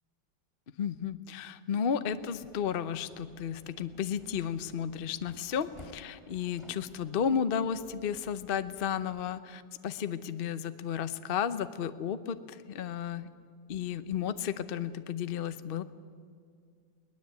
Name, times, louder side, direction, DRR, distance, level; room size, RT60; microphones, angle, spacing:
voice 1, 0.8-13.3 13.7-15.8, left 8 dB, 55° left, 12 dB, 0.6 m, -33 dB
sound 1, 2.0-9.4, left 2 dB, 15° left, 3.1 m, -57 dB
21.0 x 19.0 x 8.2 m, 2.2 s
omnidirectional pair, 2.1 m